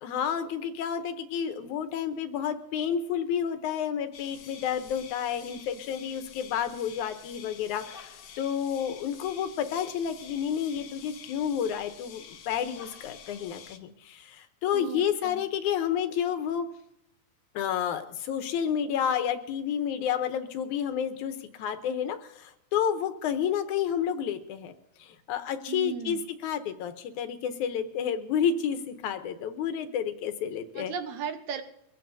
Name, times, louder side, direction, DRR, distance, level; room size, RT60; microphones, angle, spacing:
voice 1, 0.0-16.7 17.5-24.7 25.0-30.9, left 8 dB, 85° left, 9 dB, 2.4 m, -30 dB
sound 1, 4.1-13.8, left 7 dB, 70° left, 1.1 m, -48 dB
voice 2, 14.7-15.4 25.7-26.2 30.8-31.6, right 7 dB, 75° right, 6 dB, 2.4 m, -36 dB
22.5 x 16.0 x 2.7 m, 0.80 s
omnidirectional pair, 3.3 m